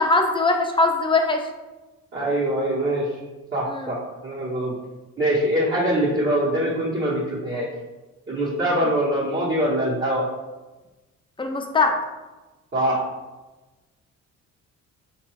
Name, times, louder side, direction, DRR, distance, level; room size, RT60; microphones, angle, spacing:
voice 1, 0.0-1.4 3.7-3.9 11.4-12.0, left 3 dB, 15° left, 3 dB, 0.5 m, -21 dB
voice 2, 2.1-3.2 3.5-4.0 4.2-4.7 5.2-7.7 8.3-10.2 12.7-13.0, right 1 dB, 35° right, -9 dB, 1.2 m, -23 dB
4.3 x 2.6 x 3.1 m, 1.1 s
cardioid pair, 90°, 30 cm